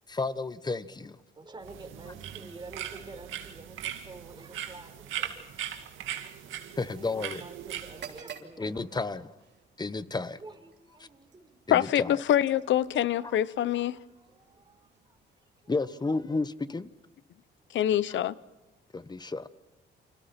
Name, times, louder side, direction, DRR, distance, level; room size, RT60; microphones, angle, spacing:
voice 1, 0.1-1.2 6.8-7.4 8.6-9.3 9.8-10.4 11.7-12.2 13.2-13.4 15.7-16.9 18.1-18.2 18.9-19.5, left 3 dB, 20° left, 1.2 m, -32 dB
voice 2, 1.3-5.5 6.9-9.2 10.4-11.6 13.1-13.3 13.7-16.0 17.7-17.9, right 3 dB, 25° right, 4.5 m, -49 dB
sound 1, 1.6-8.2, right 10 dB, 85° right, 2.3 m, -39 dB
sound 2, 7.8-15.7, right 7 dB, 60° right, 3.2 m, -52 dB
voice 3, 11.7-14.0 17.7-18.4, left 11 dB, 70° left, 0.8 m, -25 dB
29.5 x 26.0 x 4.4 m
cardioid pair, 90°, 20 cm